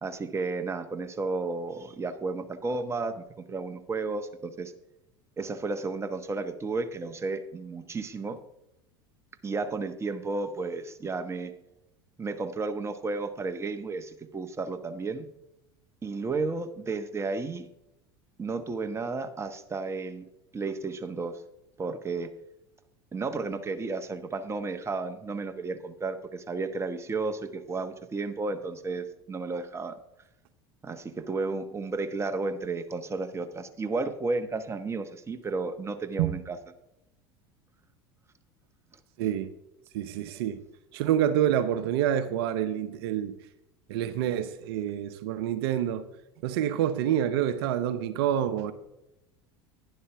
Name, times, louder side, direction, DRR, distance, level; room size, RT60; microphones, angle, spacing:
voice 1, 0.0-4.7 5.4-8.4 9.4-11.5 12.2-15.3 16.0-17.7 18.4-20.2 20.5-21.4 21.8-22.3 23.1-30.0 30.8-36.6, right 3 dB, 20° right, 1.1 m, -33 dB
voice 2, 39.2-39.5 39.9-40.6 40.9-43.3 43.9-46.0 46.4-48.7, right 10 dB, 70° right, 0.8 m, -27 dB
11.0 x 10.5 x 3.4 m
hypercardioid pair, 80°, 13 cm